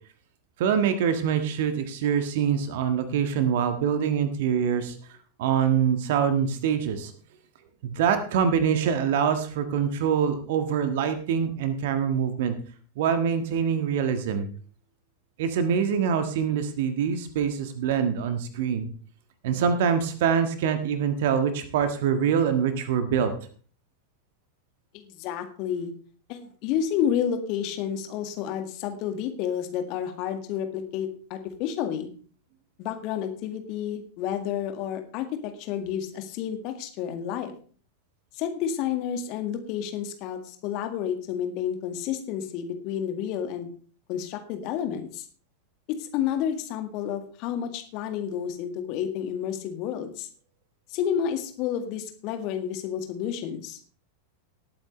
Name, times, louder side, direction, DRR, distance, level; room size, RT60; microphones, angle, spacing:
voice 1, 0.6-5.0 5.4-7.1 7.8-12.5 13.0-14.5 15.4-18.9 19.4-23.3, right 7 dB, 55° right, 9 dB, 1.6 m, -24 dB
voice 2, 24.9-25.9 26.3-32.1 32.8-37.5 38.3-43.7 44.1-45.3 46.0-50.3 50.9-53.8, left 9 dB, 40° left, 7 dB, 1.8 m, -30 dB
19.0 x 8.6 x 3.3 m, 0.42 s
figure-of-eight pair, 90°, 0 cm